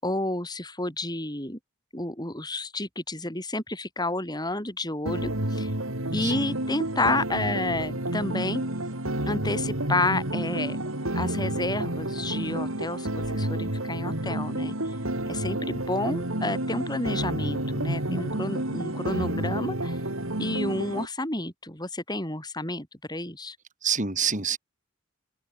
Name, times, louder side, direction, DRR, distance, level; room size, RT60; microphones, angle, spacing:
voice 1, 0.0-1.6 1.9-5.7 6.1-8.6 9.3-10.8 11.1-15.0 15.3-20.0 20.4-23.6, left 2 dB, 20° left, 7.2 m, -30 dB
sound 1, 5.1-21.1, right 1 dB, 70° right, 4.7 m, -30 dB
voice 2, 6.2-6.5 23.8-24.6, right 7 dB, 35° right, 5.9 m, -27 dB
open air
head